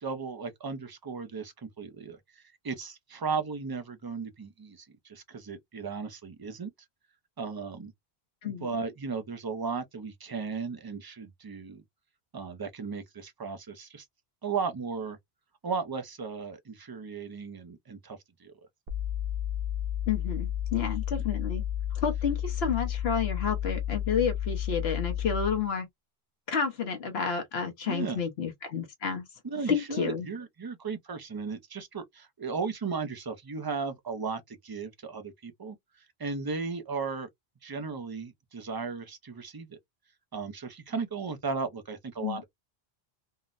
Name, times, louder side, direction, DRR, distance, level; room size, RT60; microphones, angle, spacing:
voice 1, 0.0-6.7 7.4-7.9 8.4-11.8 12.3-14.1 14.4-15.2 15.6-18.5 27.9-28.2 29.4-35.8 36.2-37.3 37.6-39.8 40.3-42.4, right 5 dB, 30° right, 0.4 m, -36 dB
sound 1, 18.9-25.7, left 10 dB, 65° right, 0.9 m, -32 dB
voice 2, 20.1-21.6 21.9-25.9 26.5-29.2 29.7-30.3 42.2-42.4, left 6 dB, 80° left, 1.1 m, -30 dB
3.7 x 2.0 x 2.4 m
omnidirectional pair, 1.1 m